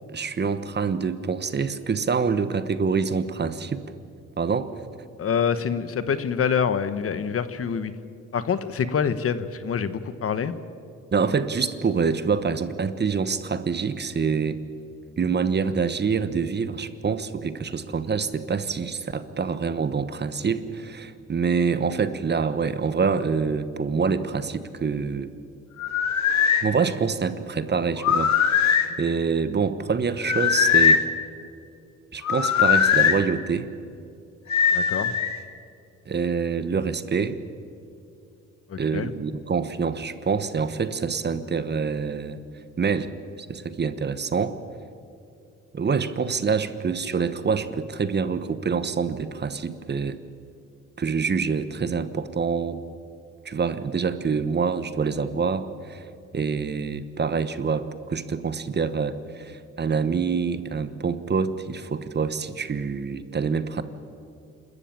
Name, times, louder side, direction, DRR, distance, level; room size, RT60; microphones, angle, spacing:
voice 1, 0.1-3.8 4.4-4.7 11.1-14.6 15.2-25.3 26.6-28.7 29.0-31.0 32.1-33.7 36.1-37.4 38.8-42.4 42.8-43.1 43.5-44.6 45.7-50.2 51.0-52.8 53.4-56.0 56.3-63.8, right 5 dB, 35° right, 12 dB, 1.1 m, -26 dB
voice 2, 5.2-7.9 8.3-10.5 34.7-35.2 38.7-39.1, left 7 dB, 50° left, 13 dB, 1.2 m, -26 dB
sound 1, 25.8-26.7 28.0-28.9 30.2-31.1 32.2-33.2 34.5-35.4, left 7 dB, 65° left, 1.7 m, -20 dB
27.5 x 13.5 x 9.0 m, 2.5 s
cardioid pair, 90°, 30 cm